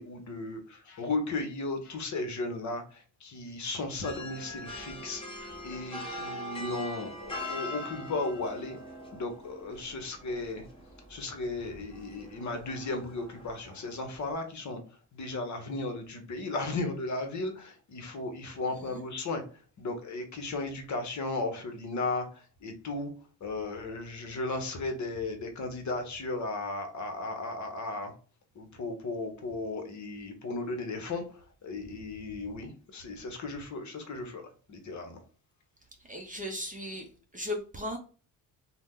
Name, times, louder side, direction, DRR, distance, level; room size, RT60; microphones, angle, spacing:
voice 1, 0.0-8.8 9.1-10.7 11.1-14.8 15.1-19.4 19.8-22.3 22.6-23.1 23.4-28.1 28.6-31.2 31.6-34.4 34.7-35.2, left 2 dB, 45° left, 5 dB, 0.9 m, -35 dB
sound 1, 4.0-14.3, left 1 dB, 15° left, 1.1 m, -43 dB
voice 2, 36.1-37.1 37.3-38.0, left 1 dB, 20° right, 3 dB, 0.6 m, -36 dB
2.8 x 2.1 x 3.5 m, 0.40 s
supercardioid pair, 75°, 42 cm